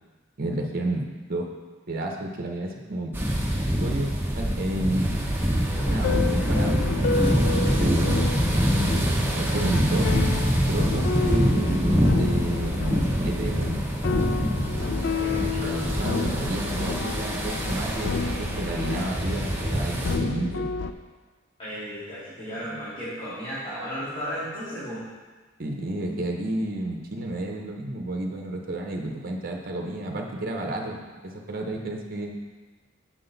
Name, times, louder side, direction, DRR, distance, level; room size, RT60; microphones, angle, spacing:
voice 1, 0.4-1.5 1.9-3.1 3.8-5.1 5.8-6.8 7.5-8.2 9.3-10.1 10.7-11.8 12.1-13.8 15.4-20.7 25.6-32.3, right 1 dB, 50° right, 1 dB, 0.8 m, -31 dB
sound 1, 3.1-20.2, equal, 10° right, 0.8 m, -25 dB
sound 2, 5.8-20.9, left 4 dB, 60° left, 0.4 m, -30 dB
voice 2, 7.6-8.0 15.2-15.8 21.6-25.0, equal, 25° left, -12 dB, 2.0 m, -34 dB
6.2 x 6.1 x 4.0 m, 1.3 s
head